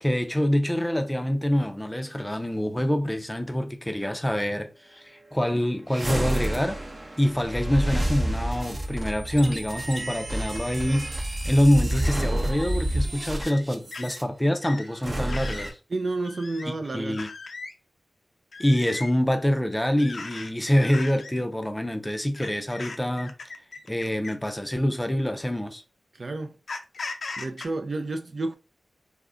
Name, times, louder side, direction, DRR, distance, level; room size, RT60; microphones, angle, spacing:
voice 1, 0.0-6.8 7.2-11.1 11.4-15.8 16.7-17.3 18.6-23.3 23.9-25.8, equal, 15° left, 0.5 m, -25 dB
sound 1, 5.9-14.2 14.9-15.7, right 1 dB, 35° right, 0.8 m, -29 dB
sound 2, 11.9-12.1 12.6-12.8 13.4-13.6 13.9-14.2 14.6-14.9 15.3-15.7 16.2-16.7 17.1-17.7 18.5-19.1 20.0-20.5 20.8-21.3 22.4-24.5 25.4-25.5 26.7-27.7, left 3 dB, 75° left, 0.4 m, -38 dB
voice 2, 15.9-17.2 26.1-26.6 27.4-28.6, right 2 dB, 60° right, 0.4 m, -30 dB
2.3 x 2.1 x 3.6 m
cardioid pair, 55°, 0 cm